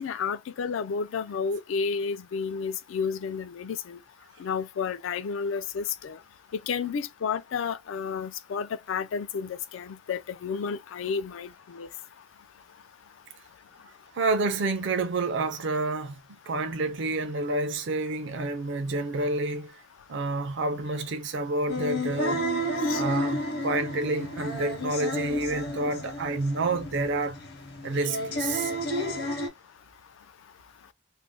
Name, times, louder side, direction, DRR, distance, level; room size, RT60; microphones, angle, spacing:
voice 1, 0.0-4.0 4.4-6.2 6.7-11.9 22.8-23.0, left 6 dB, 75° left, 0.3 m, -31 dB
voice 2, 14.1-16.2 16.5-19.8 20.1-22.4 22.9-27.4 27.8-28.7, right 2 dB, 60° right, 0.4 m, -29 dB
sound 1, 21.7-29.5, equal, 50° left, 0.8 m, -31 dB
2.5 x 2.0 x 3.6 m
head